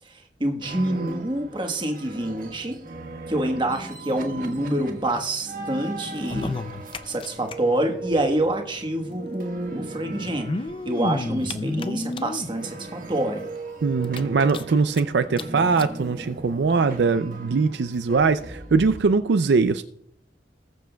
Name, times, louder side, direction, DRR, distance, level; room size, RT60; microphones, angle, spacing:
voice 1, 0.0-2.8 3.3-6.6 7.0-13.5, right 1 dB, 25° right, 4 dB, 1.3 m, -27 dB
sound 1, 0.6-19.1, right 2 dB, 50° right, 1.4 m, -38 dB
sound 2, 6.1-7.5 7.8-7.9 8.1-8.2 9.3-9.4 10.2-12.5 13.1-13.2 13.5-13.6 14.0-15.0 15.4-15.5 15.8-15.9 16.7-16.8, left 2 dB, 30° left, 0.4 m, -31 dB
voice 2, 13.8-19.8, right 4 dB, 70° right, 10 dB, 0.4 m, -21 dB
20.0 x 7.3 x 2.3 m, 0.69 s
head